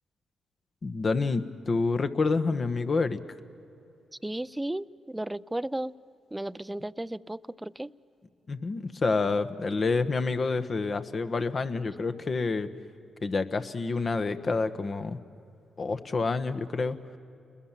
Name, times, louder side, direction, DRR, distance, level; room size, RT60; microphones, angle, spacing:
voice 1, 0.8-3.2 8.5-12.7 13.2-15.2 15.8-17.0, left 4 dB, 50° left, 10 dB, 1.3 m, -28 dB
voice 2, 4.2-5.9 6.3-7.9, right 1 dB, 15° right, 18 dB, 0.5 m, -34 dB
29.5 x 21.5 x 7.5 m, 2.6 s
supercardioid pair, 55°, 0 cm